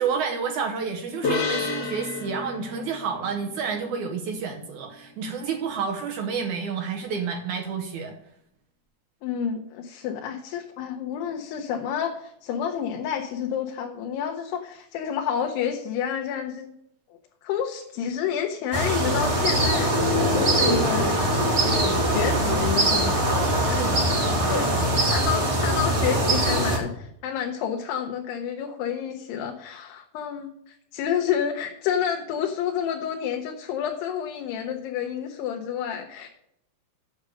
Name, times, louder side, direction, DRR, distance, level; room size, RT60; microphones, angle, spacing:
voice 1, 0.0-8.1 23.8-24.0 24.5-24.9, right 6 dB, 75° right, 3 dB, 1.8 m, -30 dB
sound 1, 1.2-4.7, left 4 dB, 70° left, 0.9 m, -31 dB
voice 2, 9.2-16.7 17.4-19.9 20.3-21.2 21.6-23.2 23.7-23.9 24.4-36.3, left 8 dB, 90° left, 3 dB, 3.0 m, -29 dB
sound 2, 18.7-26.8, right 1 dB, 40° right, 0.9 m, -22 dB
8.8 x 6.3 x 6.4 m, 0.76 s
omnidirectional pair, 4.6 m